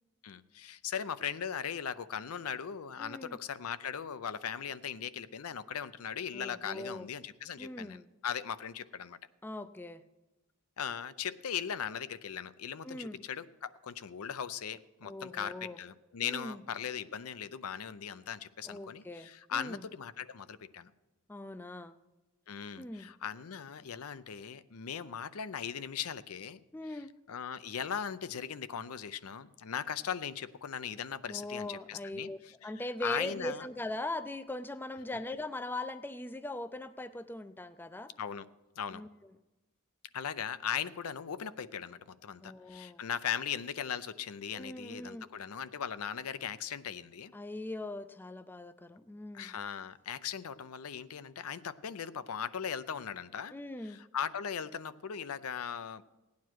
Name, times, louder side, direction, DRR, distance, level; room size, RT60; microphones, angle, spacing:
voice 1, 0.2-9.2 10.8-20.9 22.5-26.6 26.9-27.0 27.3-32.7 33.0-33.7 38.2-38.5 38.8-39.0 40.1-47.3 49.3-53.5 53.8-56.0, left 8 dB, 85° left, 15 dB, 0.6 m, -39 dB
voice 2, 3.0-3.4 6.3-7.1 7.6-8.1 9.4-10.0 12.8-13.2 15.0-15.8 16.2-16.6 18.6-19.9 21.3-21.9 22.8-23.1 26.7-27.1 31.3-38.1 38.9-39.1 42.4-43.0 44.5-45.3 47.3-49.6 53.5-54.0, left 2 dB, 10° left, 13 dB, 0.4 m, -41 dB
16.5 x 9.5 x 4.6 m, 1.1 s
head